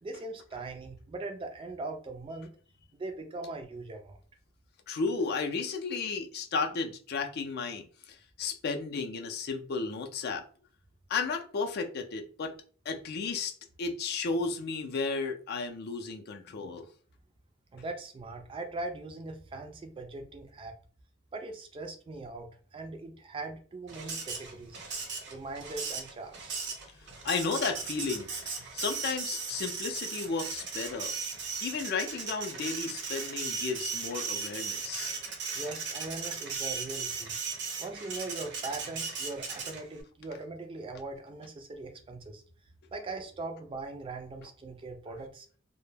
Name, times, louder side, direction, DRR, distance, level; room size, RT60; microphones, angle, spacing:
voice 1, 0.0-2.5 3.0-4.2 17.7-20.7 21.3-24.8 25.3-26.6 35.5-37.4 37.8-42.4 42.9-45.5, right 2 dB, 25° right, 0.3 m, -40 dB
voice 2, 4.9-10.4 11.1-12.6 12.9-13.5 13.8-16.9 27.2-31.1 31.6-35.1, left 4 dB, 50° left, 0.4 m, -33 dB
Printer, 23.9-40.0, right 5 dB, 60° right, 0.6 m, -37 dB
2.1 x 2.1 x 3.2 m
head